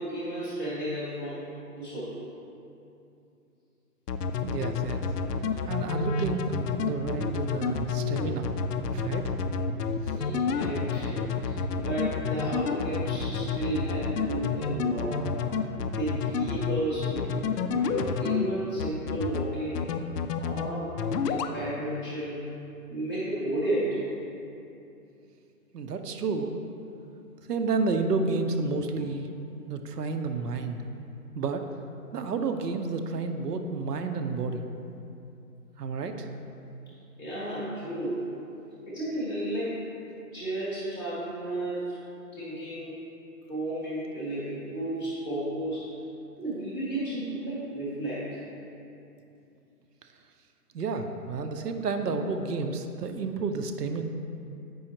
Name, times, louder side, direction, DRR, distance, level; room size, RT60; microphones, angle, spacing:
voice 1, 0.0-2.2 10.1-15.3 15.9-17.3 17.7-19.9 20.4-21.0 21.3-22.5 22.9-24.1 37.2-38.3 38.9-39.8 40.3-42.0 42.3-42.9 43.5-45.9 46.4-48.4, right 1 dB, 15° right, -13 dB, 0.6 m, -33 dB
sound 1, 4.1-18.4 18.8-19.4 19.8-20.7 21.0-21.5, left 5 dB, 75° left, 0.5 m, -29 dB
voice 2, 4.4-5.0 5.7-8.5 8.9-9.3 10.1-10.2 25.7-26.5 27.5-29.3 29.7-30.8 31.3-31.6 32.1-34.6 35.8-36.3 50.7-54.0, right 4 dB, 75° right, 6 dB, 0.7 m, -30 dB
7.7 x 5.5 x 2.9 m, 2.7 s
hypercardioid pair, 165°, 48 cm